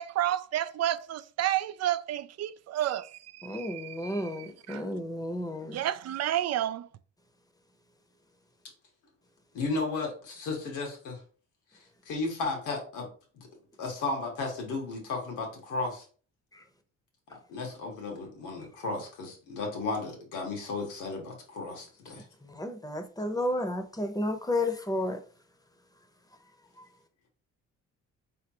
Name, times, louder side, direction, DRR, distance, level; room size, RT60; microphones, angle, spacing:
voice 1, 0.0-4.8 5.7-6.9, right 12 dB, 60° right, 0.4 m, -31 dB
voice 2, 3.4-5.8 16.5-16.6 22.1-25.2 26.8-26.9, left 1 dB, 10° left, 0.8 m, -32 dB
voice 3, 9.5-11.2 11.7-13.1 13.3-13.5 13.8-16.0 17.5-22.2, left 3 dB, 90° left, 1.7 m, -34 dB
4.6 x 3.5 x 2.9 m
cardioid pair, 90°, 30 cm